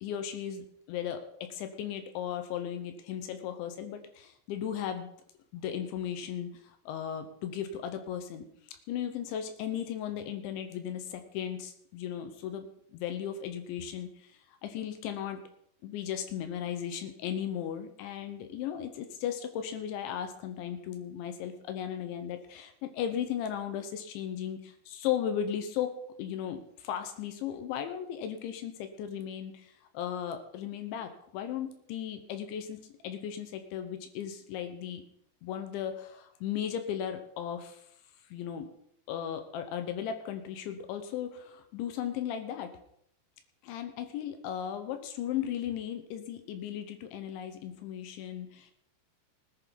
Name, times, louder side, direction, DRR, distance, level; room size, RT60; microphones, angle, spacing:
voice 1, 0.0-5.1 5.5-8.5 8.9-12.7 12.9-15.4 15.8-25.9 26.2-35.0 35.4-37.9 38.3-38.7 39.1-42.7 43.6-48.7, left 9 dB, 85° left, 8 dB, 3.4 m, -36 dB
19.5 x 10.5 x 4.1 m, 0.70 s
omnidirectional pair, 5.2 m